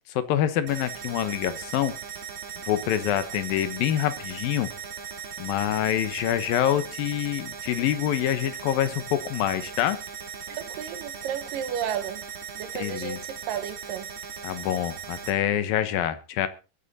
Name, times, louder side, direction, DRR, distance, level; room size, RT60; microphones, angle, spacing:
voice 1, 0.1-1.9 2.6-4.7 5.4-10.0 12.7-13.2 14.4-16.5, left 11 dB, 80° left, 2.9 m, -26 dB
sound 1, 0.7-15.3, right 7 dB, 60° right, 3.6 m, -38 dB
voice 2, 10.5-12.2 12.6-14.1, right 9 dB, 75° right, 2.8 m, -33 dB
21.5 x 9.0 x 4.2 m
omnidirectional pair, 4.1 m